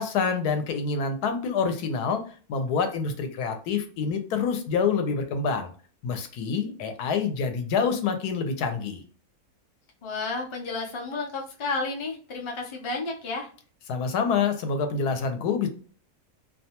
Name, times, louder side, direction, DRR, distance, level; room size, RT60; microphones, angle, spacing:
voice 1, 0.0-2.2 2.5-5.7 6.0-9.0 13.9-15.7, left 5 dB, 90° left, 6 dB, 1.2 m, -27 dB
voice 2, 10.0-13.5, left 3 dB, 40° left, 0 dB, 0.4 m, -32 dB
2.7 x 2.2 x 2.8 m, 0.40 s
omnidirectional pair, 1.6 m